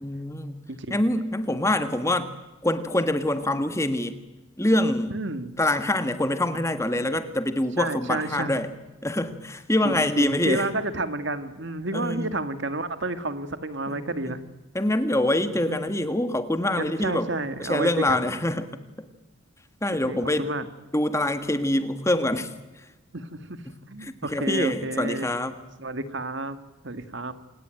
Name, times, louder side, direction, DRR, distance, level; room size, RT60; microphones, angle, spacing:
voice 1, 0.0-0.6 0.9-2.3 2.6-4.2 4.6-5.1 5.6-8.7 9.0-10.6 11.9-12.3 13.9-14.4 14.7-17.3 17.6-19.1 19.8-20.4 20.9-22.5 23.7-23.8 24.0-25.5, left 1 dB, 15° left, 9 dB, 1.6 m, -25 dB
voice 2, 0.7-1.0 5.1-5.6 7.8-8.6 9.8-14.4 15.7-16.0 16.8-18.2 20.0-20.6 23.1-25.3 25.8-26.6 26.8-27.3, right 2 dB, 55° right, 10 dB, 1.9 m, -31 dB
28.0 x 20.0 x 9.1 m, 1.1 s
head